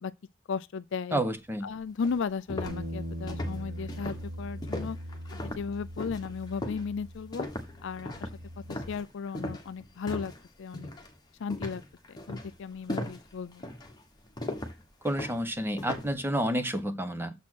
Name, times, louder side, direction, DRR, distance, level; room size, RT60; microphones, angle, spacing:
voice 1, 0.5-1.2 1.6-5.0 5.3-7.5 7.8-8.3 8.7-10.3 10.6-10.9 11.4-11.8 12.1-13.7, left 5 dB, 60° left, 0.4 m, -35 dB
voice 2, 1.1-1.7 15.0-17.3, right 1 dB, 10° right, 0.9 m, -30 dB
sound 1, 1.5-1.6 2.0-10.4 10.7-11.1 11.5-16.2, left 1 dB, 20° left, 1.2 m, -38 dB
sound 2, 2.6-8.9, equal, 75° right, 4.7 m, -41 dB
7.2 x 4.3 x 6.2 m
head